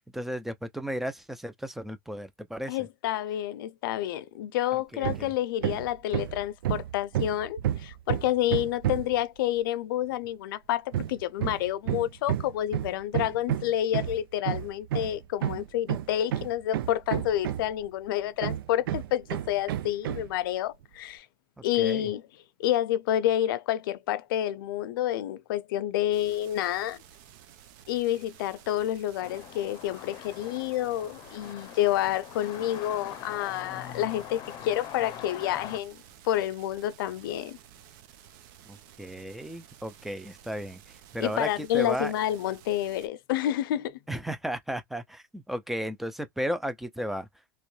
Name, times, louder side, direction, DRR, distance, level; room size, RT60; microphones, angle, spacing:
voice 1, 0.1-2.8 4.9-5.3 21.7-22.1 39.0-40.8 41.1-42.1 44.1-47.3, equal, ahead, 0.4 m, -34 dB
voice 2, 2.7-21.3 21.6-22.2 22.6-27.0 27.9-36.0 36.2-37.6 41.2-44.0, left 12 dB, 75° left, 0.5 m, -29 dB
Hammer, 5.0-5.3 5.6-9.2 10.9-17.9 18.4-20.3, right 11 dB, 80° right, 0.4 m, -31 dB
sound 1, 26.1-43.1, right 10 dB, 60° right, 0.8 m, -53 dB
sound 2, 29.2-35.8, left 10 dB, 35° left, 0.7 m, -43 dB
3.1 x 3.0 x 3.2 m
supercardioid pair, 135°, 12 cm